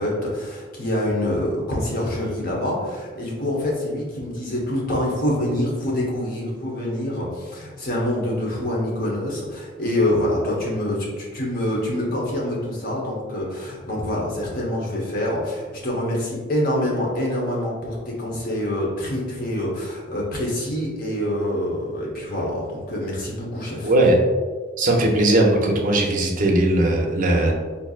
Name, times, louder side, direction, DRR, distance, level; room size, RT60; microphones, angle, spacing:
voice 1, 0.0-23.9, left 1 dB, 45° left, -3 dB, 0.9 m, -26 dB
voice 2, 23.8-24.2 24.8-27.5, right 1 dB, 40° right, 0 dB, 0.5 m, -18 dB
4.3 x 2.6 x 2.4 m, 1.5 s
head